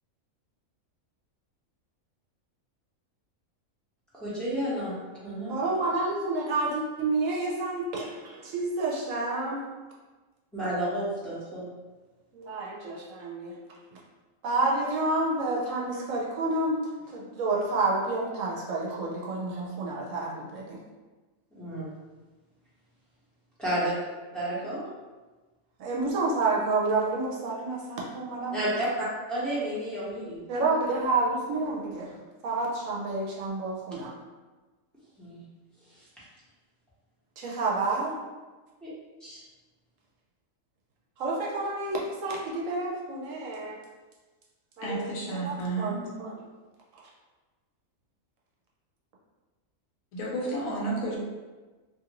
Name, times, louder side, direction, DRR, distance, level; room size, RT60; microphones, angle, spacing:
voice 1, 4.2-5.0 5.2-5.6 10.5-11.6 21.5-21.9 23.6-23.9 24.3-24.8 28.5-30.4 35.2-35.4 38.8-38.9 39.2-39.4, right 1 dB, ahead, -11 dB, 1.0 m, -31 dB
voice 2, 5.5-9.6 12.3-13.6 14.4-20.8 25.8-28.7 30.5-32.1 32.4-34.1 37.4-38.2 41.2-43.8 44.8-46.3, right 3 dB, 75° right, -3 dB, 1.0 m, -29 dB
voice 3, 44.8-46.0 50.1-51.2, right 2 dB, 75° left, -3 dB, 1.1 m, -31 dB
2.8 x 2.5 x 2.9 m, 1.3 s
omnidirectional pair, 1.4 m